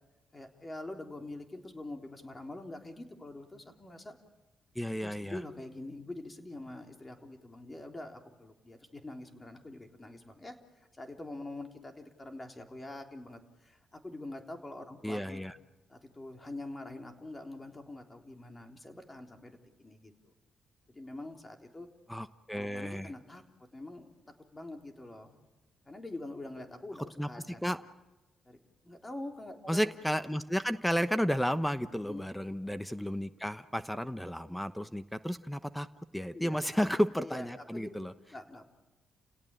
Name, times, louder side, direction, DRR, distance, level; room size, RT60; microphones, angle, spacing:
voice 1, 0.3-4.2 4.9-15.5 15.9-20.3 20.9-21.9 22.5-23.4 23.7-25.4 25.9-27.6 28.5-28.6 28.8-29.9 32.0-32.3 36.3-36.6 37.2-37.9 38.3-38.7, left 2 dB, 25° left, 4 dB, 3.7 m, -45 dB
voice 2, 4.7-5.4 15.0-15.6 22.1-23.1 27.2-27.3 27.6-27.8 29.7-35.9 36.1-38.1, equal, 5° left, 12 dB, 1.0 m, -32 dB
30.0 x 17.5 x 9.0 m, 1.1 s
supercardioid pair, 60°, 0 cm